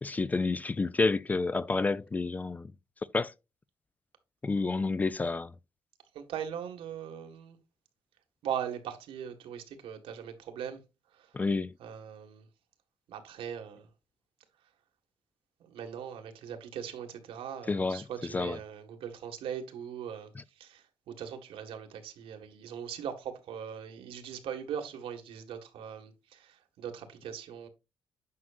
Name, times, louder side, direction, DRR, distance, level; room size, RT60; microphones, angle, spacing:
voice 1, 0.0-2.7 3.1-3.3 4.4-5.5 11.3-11.7 17.7-18.0 18.3-18.6, left 3 dB, 15° left, 0.3 m, -29 dB
voice 2, 6.1-7.6 8.4-10.8 11.1-11.4 11.8-12.5 13.1-13.9 15.6-27.7, right 8 dB, 80° right, 1.9 m, -40 dB
9.5 x 6.1 x 2.5 m
cardioid pair, 165°, 9 cm